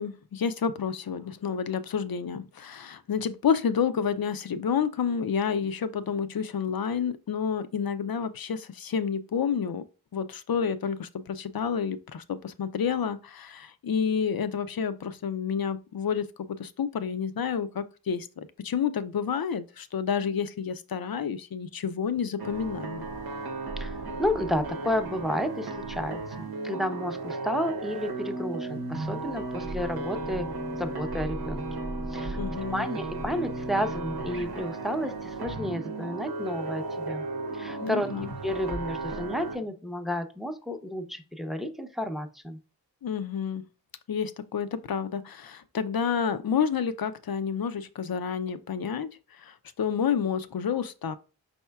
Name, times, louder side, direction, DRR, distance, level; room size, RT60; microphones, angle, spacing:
voice 1, 0.0-9.8 10.1-23.0 32.4-32.9 37.8-38.3 43.0-43.6 44.1-49.1 49.4-51.2, left 7 dB, 70° left, 0.5 m, -29 dB
sound 1, 22.4-39.6, right 3 dB, 80° right, 0.8 m, -35 dB
voice 2, 23.8-31.6 32.1-32.4 32.7-37.2 37.5-38.1 38.4-42.6, left 1 dB, ahead, 0.6 m, -31 dB
5.4 x 4.3 x 2.3 m
wide cardioid pair, 50°, 37 cm